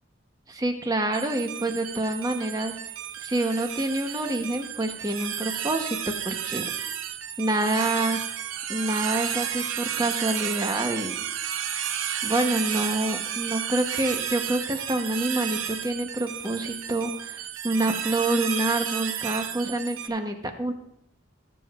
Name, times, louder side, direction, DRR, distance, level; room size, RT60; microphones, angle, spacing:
voice 1, 0.5-2.7 3.2-6.7 7.4-8.2 8.7-11.2 12.2-20.7, right 1 dB, 20° right, 5 dB, 0.9 m, -27 dB
sound 1, 1.1-20.1, right 9 dB, 85° right, 0.7 m, -32 dB
16.5 x 7.6 x 2.4 m, 0.80 s
head